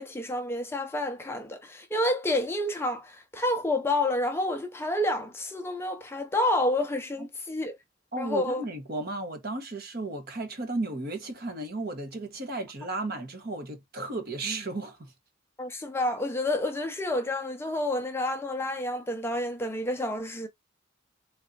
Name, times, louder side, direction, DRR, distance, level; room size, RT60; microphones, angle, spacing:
voice 1, 0.0-7.8 8.2-8.6 15.6-20.5, left 1 dB, 10° left, 0.5 m, -29 dB
voice 2, 8.1-15.1, right 2 dB, 50° right, 1.1 m, -34 dB
4.0 x 3.1 x 2.7 m
head